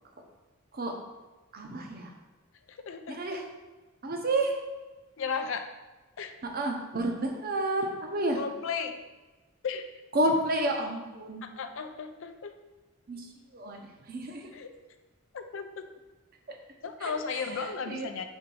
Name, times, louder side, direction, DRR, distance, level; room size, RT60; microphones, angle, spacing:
voice 1, 1.5-2.1 3.1-3.5 4.0-4.6 6.4-8.4 10.1-11.5 13.1-14.5 17.0-18.1, right 1 dB, 45° right, 3 dB, 0.8 m, -31 dB
voice 2, 2.7-3.2 5.2-5.7 6.2-6.4 8.3-9.0 9.6-9.9 11.4-12.5 14.5-14.7 15.3-15.8 16.8-18.2, left 5 dB, 65° left, 8 dB, 0.5 m, -35 dB
4.5 x 3.9 x 5.4 m, 1.2 s
head